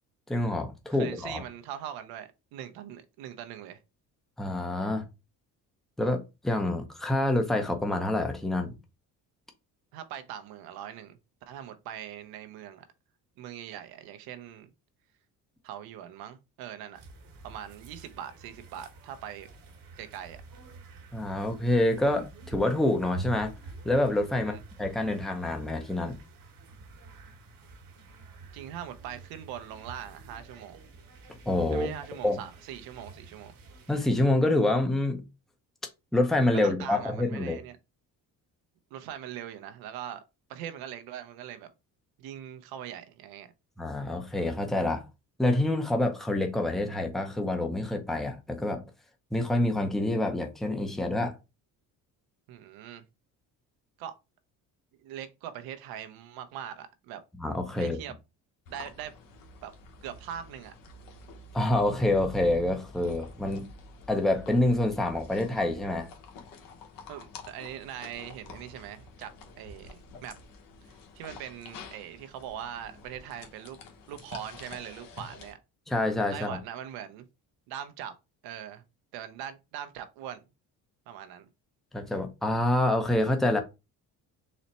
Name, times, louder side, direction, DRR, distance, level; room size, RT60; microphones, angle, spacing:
voice 1, 0.3-1.4 4.4-5.0 6.0-8.8 21.1-23.5 23.8-26.2 31.5-31.9 32.2-32.4 33.9-35.2 36.1-37.6 43.8-45.0 45.4-48.8 49.3-51.3 57.4-58.0 61.5-63.7 64.1-66.1 75.9-76.6 81.9-83.6, left 1 dB, ahead, 0.6 m, -27 dB
voice 2, 0.9-3.8 9.9-11.2 11.5-12.8 13.4-14.7 15.6-17.0 17.4-19.5 20.0-20.4 24.4-24.6 28.5-30.8 31.7-33.6 36.5-37.8 38.9-40.2 40.5-41.7 42.2-43.5 52.5-53.0 54.0-54.1 54.9-57.2 57.7-58.1 58.7-59.1 59.6-59.7 60.0-60.7 67.1-69.3 69.6-70.4 70.9-73.8 74.1-75.6 76.3-77.3 77.7-78.1 78.4-78.8 79.1-80.4 81.1-81.5, right 10 dB, 85° right, 0.7 m, -41 dB
sound 1, 16.9-34.1, right 3 dB, 70° right, 1.2 m, -47 dB
sound 2, 58.7-75.5, left 4 dB, 70° left, 1.0 m, -48 dB
4.1 x 2.1 x 4.0 m
cardioid pair, 115°, 36 cm